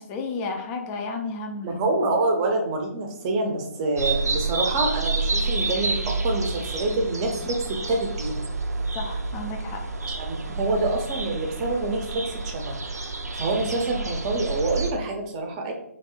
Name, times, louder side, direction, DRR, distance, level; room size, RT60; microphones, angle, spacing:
voice 1, 0.0-1.8 8.9-9.8, left 3 dB, 15° left, 3 dB, 0.4 m, -32 dB
voice 2, 1.6-7.6 7.9-8.4 10.0-12.7 13.3-15.7, right 2 dB, 25° right, 2 dB, 0.7 m, -26 dB
sound 1, 4.0-14.9, right 3 dB, 85° right, 0.5 m, -29 dB
3.1 x 2.7 x 4.3 m, 0.78 s
figure-of-eight pair, 150°, 9 cm